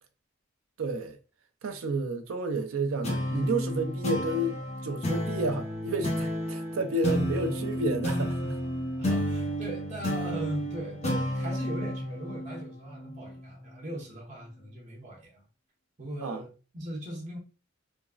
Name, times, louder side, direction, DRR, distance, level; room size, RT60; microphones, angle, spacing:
voice 1, 0.8-1.2 1.6-8.6 16.2-16.4, right 2 dB, 90° right, 0.5 m, -31 dB
sound 1, 3.0-13.9, equal, 35° left, 0.7 m, -32 dB
voice 2, 9.0-15.4 16.0-17.4, right 1 dB, 40° right, 0.8 m, -39 dB
3.5 x 2.0 x 2.3 m
head